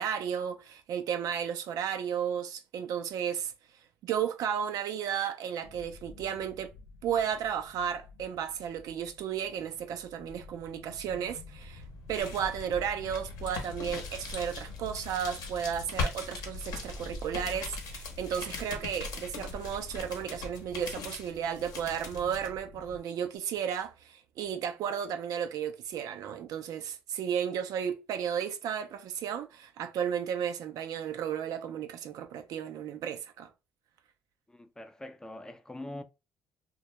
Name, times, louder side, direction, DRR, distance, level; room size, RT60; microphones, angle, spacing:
voice 1, 0.0-3.5 4.0-6.7 7.0-11.8 12.1-33.5, right 8 dB, 65° right, 0.4 m, -33 dB
sound 1, 5.6-23.0, left 4 dB, 85° left, 0.4 m, -50 dB
sound 2, 11.6-22.5, left 3 dB, 70° left, 0.8 m, -40 dB
voice 2, 34.5-36.0, left 1 dB, 10° left, 0.4 m, -43 dB
2.1 x 2.0 x 2.9 m
supercardioid pair, 60°, 7 cm